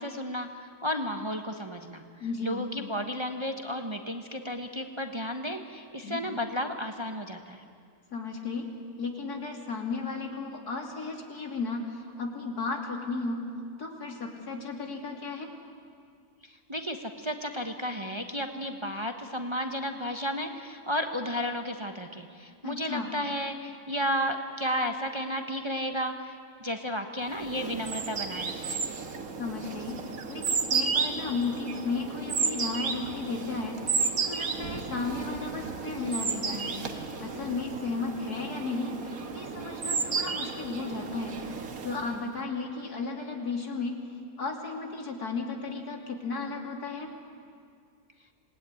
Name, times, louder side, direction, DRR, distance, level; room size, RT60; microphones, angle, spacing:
voice 1, 0.0-7.6 16.4-28.8, equal, 20° right, 5 dB, 1.2 m, -33 dB
voice 2, 2.2-2.7 6.0-6.2 8.1-8.7 9.0-13.4 13.8-15.5 22.6-23.1 29.4-44.0 44.4-47.1, left 4 dB, 80° left, 2 dB, 3.4 m, -34 dB
sound 1, 27.3-42.3, right 5 dB, 65° right, 2.0 m, -33 dB
27.0 x 19.5 x 9.7 m, 2.3 s
omnidirectional pair, 1.6 m